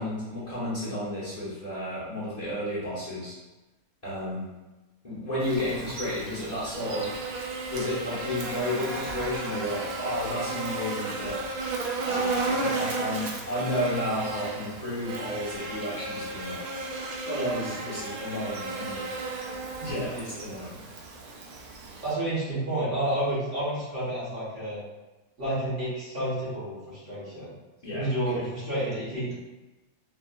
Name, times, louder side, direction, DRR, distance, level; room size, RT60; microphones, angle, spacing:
voice 1, 0.0-3.4 4.0-4.5 5.0-7.1 7.7-11.4 12.0-16.6 17.2-19.0 19.8-20.8 27.8-28.4, left 1 dB, 30° left, -10 dB, 1.3 m, -32 dB
Buzz, 5.4-22.1, right 3 dB, 85° right, 1.1 m, -34 dB
voice 2, 22.0-24.8 25.4-27.5 27.9-29.3, right 1 dB, 55° right, -11 dB, 1.9 m, -30 dB
4.4 x 2.6 x 2.5 m, 1.1 s
omnidirectional pair, 1.5 m